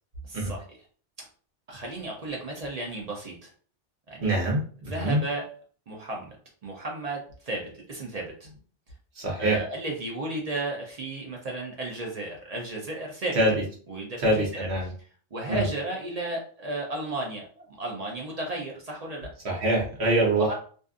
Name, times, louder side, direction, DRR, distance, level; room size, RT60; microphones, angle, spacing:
voice 1, 0.3-0.6 1.7-3.5 4.1-4.3 4.9-5.5 5.9-6.4 6.6-8.5 9.4-13.4 13.9-14.7 15.3-19.3 20.4-20.5, right 2 dB, 45° right, -1 dB, 0.6 m, -34 dB
voice 2, 4.2-5.2 9.2-9.6 13.3-13.5 14.2-14.9 15.5-15.7 19.4-20.5, right 1 dB, 65° right, -2 dB, 1.1 m, -24 dB
2.6 x 2.4 x 2.4 m, 0.44 s
omnidirectional pair, 1.2 m